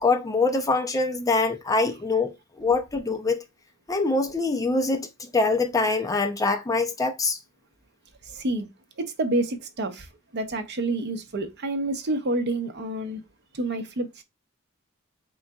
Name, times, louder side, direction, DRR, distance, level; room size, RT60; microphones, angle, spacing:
voice 1, 0.0-3.4 3.9-7.4, left 3 dB, 15° left, 0.5 m, -24 dB
voice 2, 8.2-8.7 9.0-10.1 10.3-13.2 13.5-14.2, right 2 dB, 55° right, 0.7 m, -28 dB
3.9 x 3.8 x 2.3 m
head